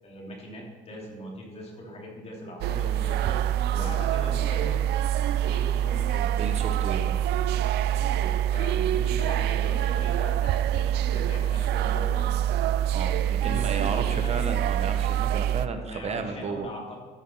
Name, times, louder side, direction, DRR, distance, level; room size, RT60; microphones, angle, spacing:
voice 1, 0.0-3.4 3.7-4.8 5.4-6.3 7.8-12.6 13.2-14.4 15.6-17.0, left 1 dB, 40° left, -1 dB, 3.1 m, -40 dB
sound 1, 2.6-15.7, right 11 dB, 75° right, 0.4 m, -25 dB
voice 2, 6.4-7.2 12.9-16.7, right 5 dB, 40° right, 6 dB, 1.3 m, -33 dB
13.5 x 5.8 x 5.6 m, 1.4 s
cardioid pair, 110°, 17 cm